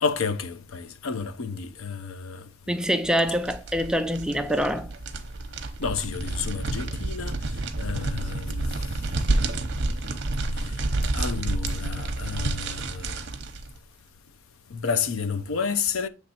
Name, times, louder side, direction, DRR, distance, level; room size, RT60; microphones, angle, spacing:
voice 1, 0.0-2.4 5.8-7.4 7.8-8.9 11.1-13.2 14.7-16.1, left 5 dB, 80° left, 0.6 m, -30 dB
voice 2, 2.7-4.9, equal, 5° right, 0.4 m, -25 dB
sound 1, 3.0-13.7, right 2 dB, 55° right, 0.8 m, -29 dB
7.5 x 3.2 x 4.2 m
head